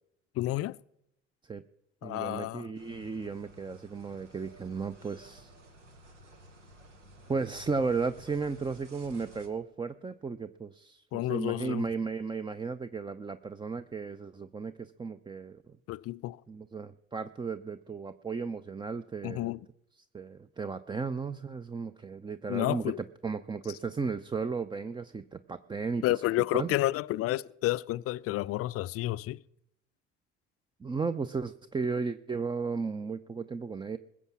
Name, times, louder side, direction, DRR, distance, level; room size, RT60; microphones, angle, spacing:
voice 1, 0.4-0.8 2.0-2.6 11.1-11.9 15.9-16.4 19.2-19.6 22.5-23.0 26.0-29.4, left 16 dB, 40° left, 0.5 m, -30 dB
voice 2, 2.0-5.5 7.3-15.8 16.5-19.5 20.1-26.0 26.5-26.7 30.8-34.0, right 4 dB, 15° right, 0.5 m, -35 dB
sound 1, 2.7-9.5, right 1 dB, 90° right, 1.3 m, -54 dB
21.0 x 7.3 x 6.0 m
figure-of-eight pair, 60°, 35 cm